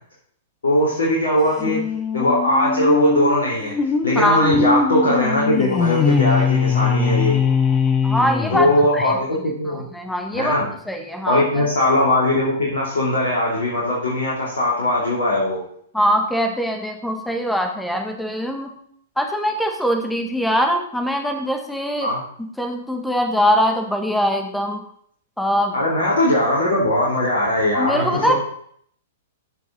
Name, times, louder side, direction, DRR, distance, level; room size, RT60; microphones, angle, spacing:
voice 1, 0.6-1.8 2.1-3.7 4.0-7.4 8.5-9.8 10.3-10.7 11.3-15.6 22.0-22.2 25.7-28.3, left 1 dB, 65° left, -5 dB, 3.1 m, -20 dB
sound 1, 1.6-9.1, left 5 dB, 20° left, 1.1 m, -21 dB
voice 2, 4.2-4.5 8.0-8.7 8.9-9.1 9.7-10.6 10.9-11.7 15.9-18.7 19.2-22.1 22.4-24.8 25.4-25.8 27.7-28.3, equal, 5° left, 4 dB, 1.6 m, -22 dB
14.5 x 5.9 x 4.1 m, 0.64 s
figure-of-eight pair, 105°, 0 cm